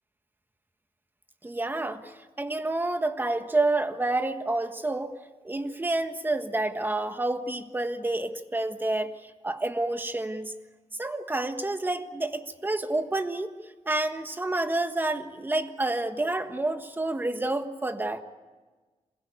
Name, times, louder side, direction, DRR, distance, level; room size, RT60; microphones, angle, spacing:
voice 1, 1.4-5.2 5.4-10.5 11.0-13.5 13.8-18.2, right 2 dB, 15° right, 8 dB, 1.5 m, -29 dB
27.0 x 16.0 x 9.5 m, 1.3 s
wide cardioid pair, 125°, 12 cm